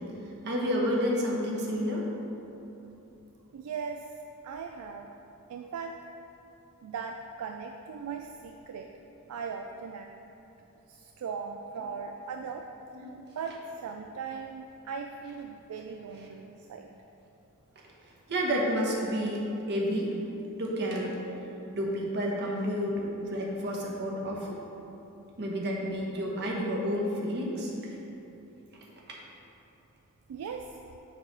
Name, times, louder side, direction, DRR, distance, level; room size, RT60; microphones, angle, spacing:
voice 1, 0.4-2.1 11.8-12.0 12.9-13.2 18.3-20.1 20.6-21.2 21.7-24.6 25.4-27.7 29.1-29.2, equal, 50° right, -2 dB, 1.1 m, -30 dB
voice 2, 3.5-4.0 4.4-5.1 5.5-6.0 6.8-8.9 9.3-10.1 10.9-12.6 13.4-16.9 30.3-30.6, right 6 dB, 75° right, 3 dB, 0.3 m, -39 dB
7.2 x 3.2 x 5.9 m, 3.0 s
head